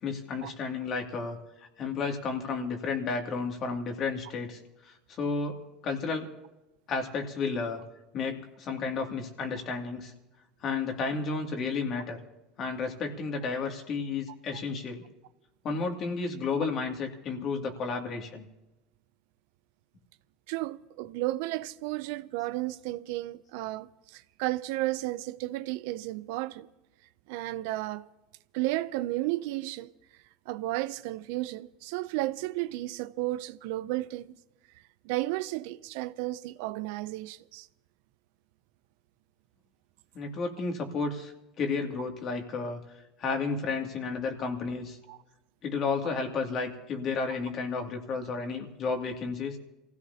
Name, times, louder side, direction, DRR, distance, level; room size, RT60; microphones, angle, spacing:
voice 1, 0.0-4.6 5.1-6.3 6.9-7.8 8.1-10.1 10.6-12.2 12.6-15.0 15.6-18.5 40.1-41.3 41.6-42.8 43.2-45.0 45.6-49.6, left 4 dB, 45° left, 2.5 m, -32 dB
voice 2, 20.5-26.7 27.3-28.1 28.5-29.9 30.5-34.4 35.0-37.7 45.1-45.2, right 17 dB, 75° right, 0.5 m, -33 dB
27.5 x 16.0 x 2.8 m
supercardioid pair, 100°, 0 cm